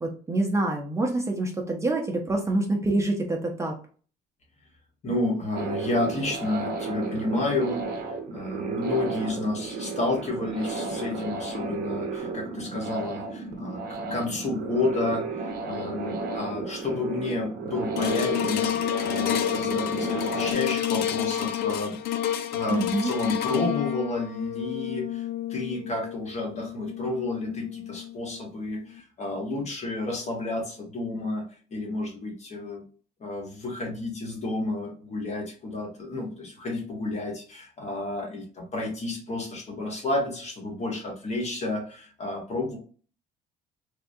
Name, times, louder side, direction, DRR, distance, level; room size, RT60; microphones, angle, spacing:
voice 1, 0.0-3.8 22.7-23.1, right 2 dB, 15° right, 1 dB, 0.6 m, -26 dB
voice 2, 5.0-7.8 8.3-15.3 15.6-22.0 22.5-25.2 25.5-31.4 31.7-32.8 33.2-42.8, left 2 dB, 40° left, 1 dB, 1.2 m, -31 dB
sound 1, 5.5-20.5, right 3 dB, 65° right, 0.7 m, -33 dB
sound 2, 18.0-28.4 28.9-29.0, left 11 dB, 75° left, 0.4 m, -29 dB
3.5 x 2.2 x 2.6 m, 0.41 s
cardioid pair, 110°, 17 cm